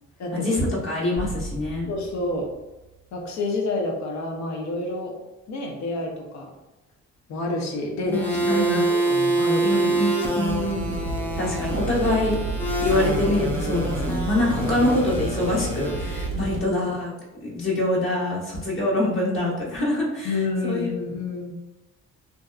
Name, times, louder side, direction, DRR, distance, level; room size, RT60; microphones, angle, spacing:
voice 1, 0.3-2.0 8.1-8.9 9.6-11.0 11.4-12.4 12.8-17.1 17.4-20.9, left 1 dB, 45° left, -6 dB, 1.1 m, -25 dB
sound 1, 1.2-3.6, right 1 dB, 80° left, 1.4 m, -38 dB
voice 2, 1.9-2.5 3.1-5.2 5.5-6.5 7.3-9.6 10.4-10.5 16.3-16.5 20.2-21.5, left 2 dB, 65° left, 1 dB, 0.6 m, -29 dB
sound 2, 8.1-16.3, right 2 dB, 5° left, 0.4 m, -26 dB
sound 3, 10.4-16.6, right 3 dB, 50° right, 0.5 m, -30 dB
2.6 x 2.3 x 2.3 m, 1.0 s
cardioid pair, 90°, 30 cm